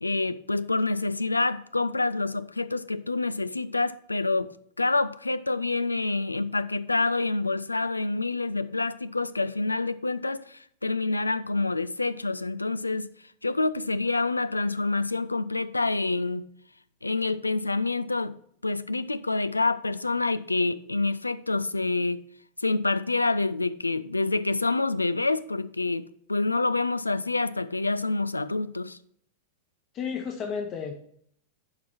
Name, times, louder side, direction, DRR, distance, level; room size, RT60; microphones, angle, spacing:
voice 1, 0.0-4.5 4.8-13.1 13.4-16.4 17.0-18.3 18.6-22.2 22.6-29.0, left 3 dB, 80° left, 0.4 m, -27 dB
voice 2, 29.9-30.9, left 6 dB, 30° left, 0.9 m, -32 dB
11.0 x 4.8 x 4.2 m
figure-of-eight pair, 90°, 0 cm